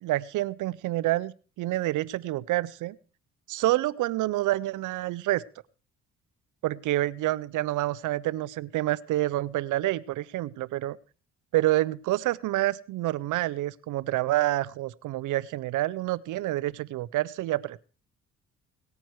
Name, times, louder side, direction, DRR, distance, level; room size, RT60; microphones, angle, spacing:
voice 1, 0.0-1.3 1.6-3.0 3.5-5.4 6.6-11.0 11.5-17.8, right 16 dB, 85° right, 20 dB, 0.6 m, -28 dB
18.5 x 9.2 x 4.6 m, 0.38 s
cardioid pair, 90°, 30 cm